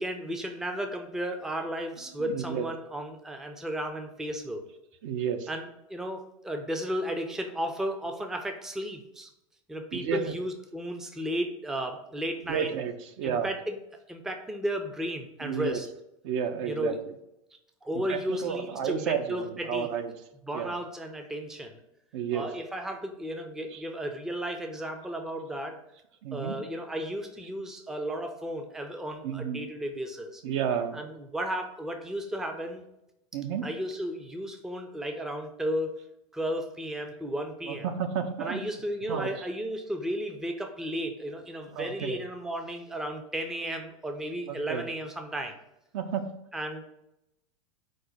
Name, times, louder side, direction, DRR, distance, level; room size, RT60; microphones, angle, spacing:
voice 1, 0.0-4.6 5.5-9.3 9.7-12.8 13.2-13.8 14.1-15.9 16.7-17.0 17.8-19.9 20.5-21.8 22.3-25.8 26.3-30.4 30.9-32.8 33.6-35.9 36.3-37.9 38.4-45.6 46.5-46.9, equal, 5° right, 5 dB, 0.4 m, -34 dB
voice 2, 2.2-2.7 5.0-5.5 9.9-10.2 12.5-13.5 15.4-15.8 16.2-16.9 18.1-20.1 20.5-20.7 22.1-22.4 23.7-23.8 26.2-26.6 29.2-29.6 30.4-31.0 33.3-33.6 37.7-38.6 39.1-39.3 41.7-42.2 44.5-44.8 45.9-46.2, right 8 dB, 60° right, 8 dB, 0.5 m, -31 dB
4.9 x 2.1 x 4.1 m, 0.85 s
hypercardioid pair, 100°, 18 cm